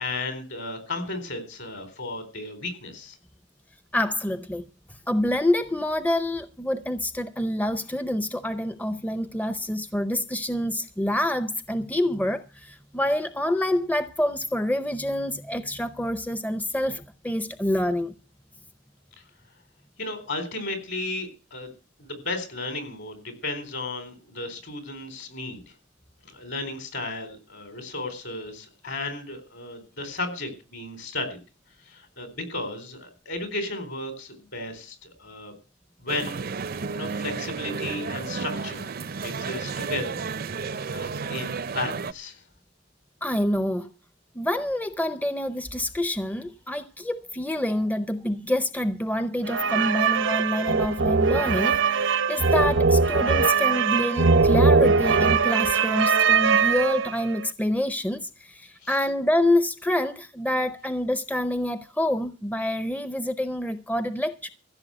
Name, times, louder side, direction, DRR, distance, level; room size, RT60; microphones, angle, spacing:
voice 1, 0.0-3.2 20.0-21.7 22.0-25.6 26.2-31.4 31.9-35.5 36.0-36.4 36.9-38.9 39.2-40.2 40.6-42.4 58.8-58.9, left 2 dB, 65° left, 4.1 m, -34 dB
voice 2, 3.9-4.6 5.1-18.1 43.2-43.9 44.3-64.5, left 1 dB, 10° left, 0.6 m, -27 dB
sound 1, 36.1-42.1, right 5 dB, 50° right, 0.5 m, -32 dB
sound 2, 49.5-57.3, right 5 dB, 85° right, 0.9 m, -21 dB
15.0 x 6.8 x 7.7 m
head